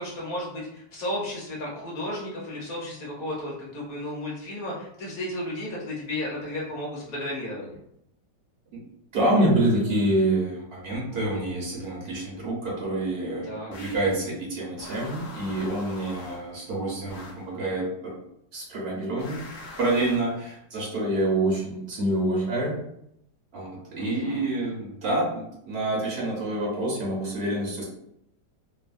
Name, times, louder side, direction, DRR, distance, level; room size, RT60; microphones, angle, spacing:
voice 1, 0.0-7.8 13.5-13.7 24.0-24.5, left 1 dB, 60° left, -4 dB, 1.2 m, -33 dB
voice 2, 9.1-18.1 18.5-19.5 19.8-22.8 23.5-27.8, right 1 dB, 70° right, -4 dB, 0.6 m, -27 dB
sound 1, 13.7-14.1 14.8-16.6 17.1-17.5 19.2-20.4, left 2 dB, 75° left, 0.7 m, -43 dB
3.1 x 2.0 x 2.4 m, 0.76 s
omnidirectional pair, 1.9 m